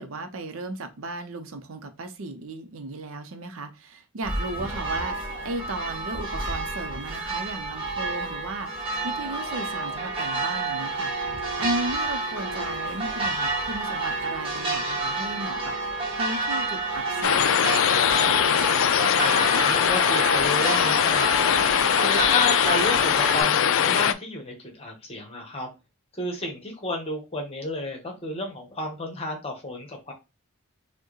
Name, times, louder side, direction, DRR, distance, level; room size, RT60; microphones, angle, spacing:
voice 1, 0.0-5.2 5.4-11.1 11.6-15.7 16.2-18.0, right 2 dB, 65° right, 0.6 m, -35 dB
sound 1, 4.2-23.4, right 3 dB, 25° right, 1.1 m, -29 dB
sound 2, 17.2-24.1, left 9 dB, 60° left, 0.3 m, -21 dB
voice 2, 19.2-25.7 26.2-30.1, left 2 dB, 25° left, 1.1 m, -32 dB
4.5 x 2.1 x 3.1 m
head